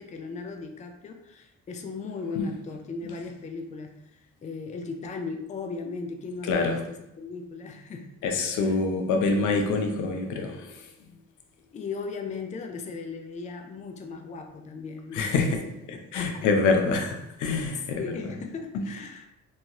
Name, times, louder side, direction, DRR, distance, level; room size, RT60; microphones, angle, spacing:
voice 1, 0.0-8.1 8.6-8.8 11.7-15.6 16.1-16.5 17.7-19.3, left 4 dB, 25° left, 4 dB, 0.4 m, -37 dB
voice 2, 6.4-6.7 8.2-10.9 15.1-15.6 15.9-18.0, left 4 dB, 80° left, 4 dB, 0.6 m, -26 dB
3.1 x 2.6 x 2.8 m, 0.86 s
cardioid pair, 90°, 30 cm